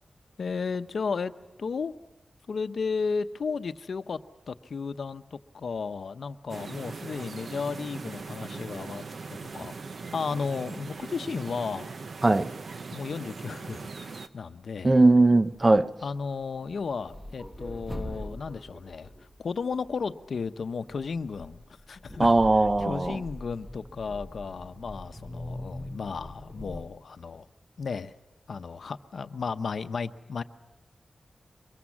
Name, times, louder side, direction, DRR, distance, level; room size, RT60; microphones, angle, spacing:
voice 1, 0.4-1.3 1.6-1.9 2.5-4.2 4.5-9.0 9.3-9.8 10.1-11.9 12.9-15.0 16.0-19.1 19.4-27.5 27.8-28.1 28.5-30.4, left 5 dB, 75° left, 0.8 m, -34 dB
sound 1, 6.5-14.3, right 4 dB, 70° right, 0.9 m, -40 dB
voice 2, 12.2-12.5 14.8-15.9 22.2-23.2, right 2 dB, 30° right, 0.7 m, -20 dB
sound 2, 14.9-15.8 16.1-20.3 20.9-26.9, left 1 dB, 5° right, 1.3 m, -42 dB
24.0 x 22.5 x 7.3 m
wide cardioid pair, 120°, 0 cm